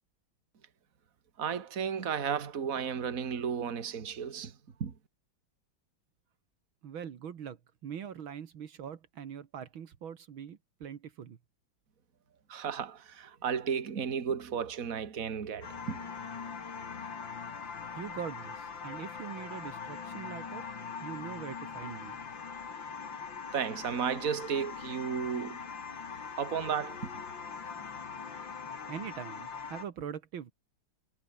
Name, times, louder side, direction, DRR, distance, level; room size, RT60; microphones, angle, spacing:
voice 1, 1.4-4.5 4.8-4.9 12.5-16.0 23.5-25.6 26.4-27.1, right 7 dB, 45° right, 2.2 m, -33 dB
voice 2, 6.8-11.4 17.9-22.2 28.9-30.5, right 8 dB, 75° right, 2.3 m, -42 dB
sound 1, 15.6-29.9, left 6 dB, 65° left, 3.1 m, -42 dB
omnidirectional pair, 2.2 m